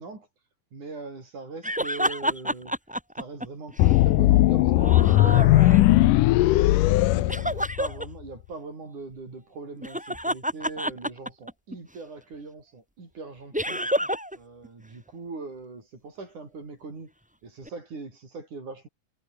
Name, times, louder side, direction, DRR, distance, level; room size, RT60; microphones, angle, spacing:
voice 1, 0.0-2.7 3.2-6.0 6.5-14.1 14.3-17.1 17.4-18.9, right 3 dB, 60° right, 8.7 m, -41 dB
sound 1, 1.6-4.0 4.7-6.1 7.3-8.1 9.8-11.8 13.5-14.4 14.6-14.7 17.7-17.8, equal, ahead, 6.9 m, -29 dB
sound 2, 3.8-8.1, left 17 dB, 75° left, 2.3 m, -18 dB
omnidirectional pair, 4.0 m